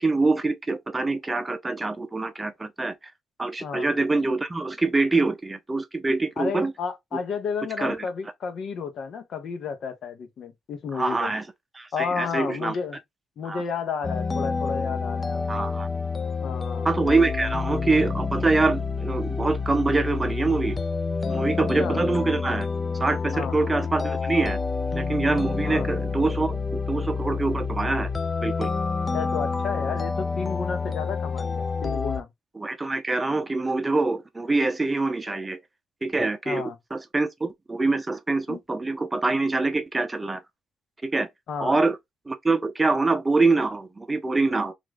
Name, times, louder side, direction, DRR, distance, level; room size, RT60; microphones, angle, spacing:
voice 1, 0.0-2.9 3.4-6.7 7.8-8.0 10.9-11.4 11.8-12.7 13.5-13.6 15.5-15.9 16.8-20.8 21.3-22.7 23.0-24.6 25.0-28.1 28.4-28.7 32.6-35.6 36.0-40.4 41.0-41.3 41.6-42.0 42.3-44.7, right 3 dB, 20° right, 0.6 m, -25 dB
voice 2, 6.4-11.3 11.9-13.0 13.4-15.4 16.4-16.9 21.6-22.0 23.3-23.6 25.6-25.9 29.1-32.3 36.5-36.8 38.5-38.6 41.5-41.8, left 6 dB, 65° left, 0.9 m, -32 dB
sound 1, 14.0-32.2, left 4 dB, 25° left, 0.4 m, -28 dB
3.0 x 2.5 x 3.5 m
cardioid pair, 90°, 0 cm